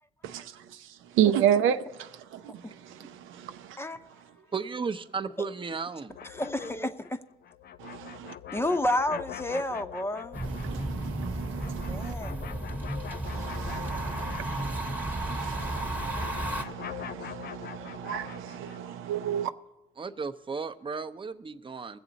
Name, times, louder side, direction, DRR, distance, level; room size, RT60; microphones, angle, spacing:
voice 1, 0.2-4.4 7.8-8.4 10.4-12.2 13.2-19.5, right 9 dB, 90° right, 0.6 m, -32 dB
voice 2, 4.5-6.2 20.0-22.0, right 5 dB, 25° right, 0.7 m, -34 dB
sound 1, 6.1-15.0 15.3-19.0, left 10 dB, 55° left, 0.5 m, -44 dB
voice 3, 6.2-7.2 8.5-10.4 11.9-12.5, left 1 dB, 10° left, 0.7 m, -30 dB
sound 2, 10.3-16.6, right 1 dB, 10° right, 1.1 m, -33 dB
21.0 x 7.5 x 4.0 m
cardioid pair, 90°, 20 cm